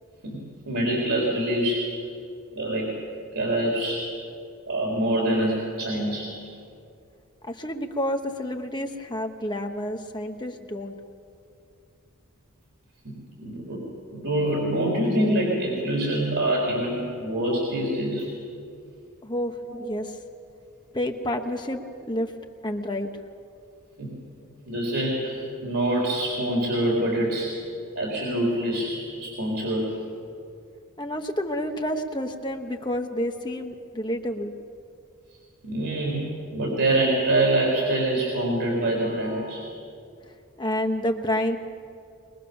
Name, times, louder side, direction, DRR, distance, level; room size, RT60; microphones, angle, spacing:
voice 1, 0.2-1.9 2.5-2.9 3.3-4.0 4.7-6.3 13.0-13.1 13.4-13.8 14.1-18.3 19.7-19.8 24.0-24.1 24.7-27.5 28.0-30.0 35.6-39.6, right 1 dB, 80° right, -3 dB, 4.1 m, -25 dB
voice 2, 7.4-11.0 19.2-20.1 20.9-21.8 22.1-22.3 22.6-23.1 31.0-34.5 40.6-41.6, left 1 dB, 20° left, 4 dB, 1.0 m, -29 dB
22.0 x 21.5 x 7.0 m, 2.5 s
head